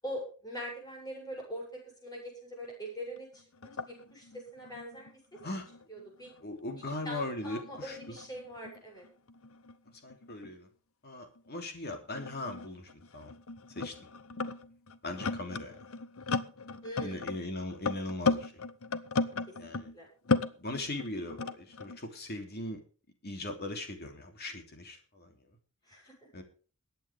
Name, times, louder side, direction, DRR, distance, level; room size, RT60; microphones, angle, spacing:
voice 1, 0.0-5.1 5.9-6.3 6.8-9.0 13.8-14.0 16.8-17.2 19.7-20.1 25.8-26.3, equal, 20° left, -2 dB, 7.6 m, -43 dB
sound 1, 3.2-3.3 3.5-6.4 6.7-10.5 11.4-11.5 12.2-20.0 20.3-22.0, left 3 dB, 70° left, 0.9 m, -36 dB
voice 2, 6.4-8.0 10.0-10.7 11.0-13.3 13.7-13.9 15.0-15.8 17.0-18.5 19.6-19.9 20.6-22.8 23.2-25.3 26.3-26.4, left 2 dB, 50° left, 4 dB, 3.0 m, -39 dB
22.5 x 9.2 x 3.5 m, 0.39 s
head